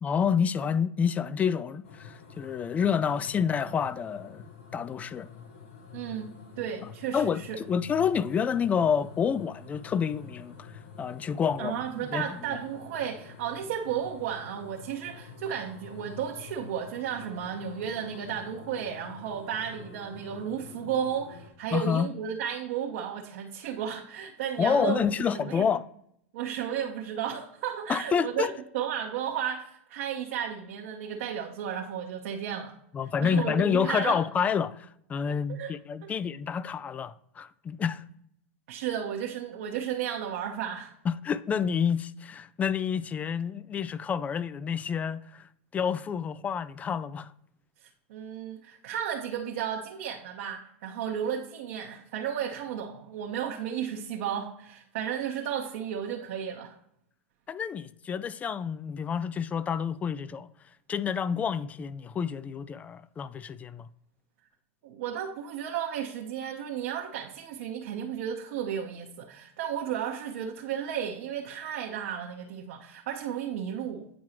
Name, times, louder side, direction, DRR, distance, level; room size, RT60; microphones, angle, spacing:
voice 1, 0.0-4.4 4.7-5.3 7.1-10.5 11.0-11.8 12.1-12.4 21.7-22.1 24.6-25.8 27.9-28.5 32.9-38.0 41.1-45.5 45.7-47.3 57.5-60.5 60.9-63.9, left 7 dB, 20° left, 0.3 m, -28 dB
sound 1, 1.8-21.5, left 5 dB, 70° left, 1.1 m, -48 dB
voice 2, 5.9-6.3 6.6-7.6 11.6-25.7 26.3-32.7 33.2-34.2 35.3-35.7 36.0-36.1 38.7-40.9 47.8-56.8 64.8-74.1, right 9 dB, 65° right, 0.9 m, -33 dB
9.0 x 4.6 x 2.9 m
hypercardioid pair, 110°, 7 cm